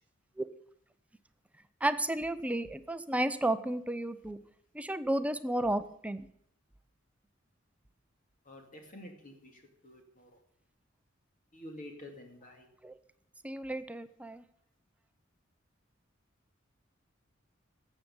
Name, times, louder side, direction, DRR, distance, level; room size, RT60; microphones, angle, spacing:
voice 1, 1.8-4.4 4.7-6.3 12.8-13.0 13.4-14.4, right 1 dB, 5° right, 12 dB, 0.5 m, -32 dB
voice 2, 8.5-10.3 11.5-12.7, left 1 dB, 45° left, 3 dB, 2.4 m, -49 dB
14.0 x 7.9 x 7.0 m, 0.71 s
head